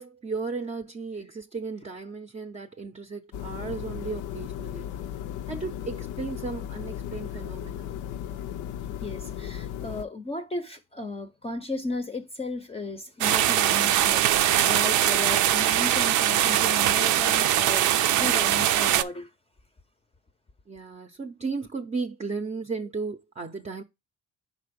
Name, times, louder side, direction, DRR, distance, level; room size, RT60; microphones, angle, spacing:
voice 1, 0.0-4.9 5.5-8.0 20.7-23.8, right 4 dB, 25° right, 0.5 m, -35 dB
sound 1, 3.3-10.0, left 10 dB, 80° left, 0.6 m, -36 dB
voice 2, 9.0-19.3, left 2 dB, 20° left, 0.6 m, -35 dB
sound 2, 13.2-19.0, right 12 dB, 75° right, 0.5 m, -22 dB
5.3 x 3.8 x 5.1 m
cardioid pair, 90°, 30 cm